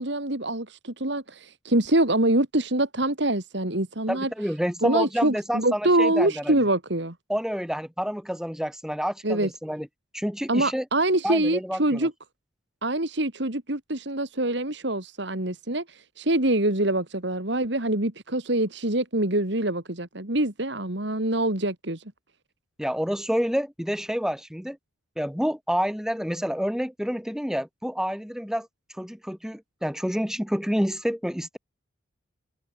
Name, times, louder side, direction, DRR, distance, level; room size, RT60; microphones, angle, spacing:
voice 1, 0.0-4.3 4.8-7.1 9.2-9.5 10.5-12.1 12.8-22.0, right 1 dB, 55° right, 2.7 m, -25 dB
voice 2, 4.1-6.6 7.3-9.9 10.1-10.8 11.2-12.1 22.8-24.8 25.2-28.7 29.0-31.6, equal, 5° right, 3.8 m, -28 dB
head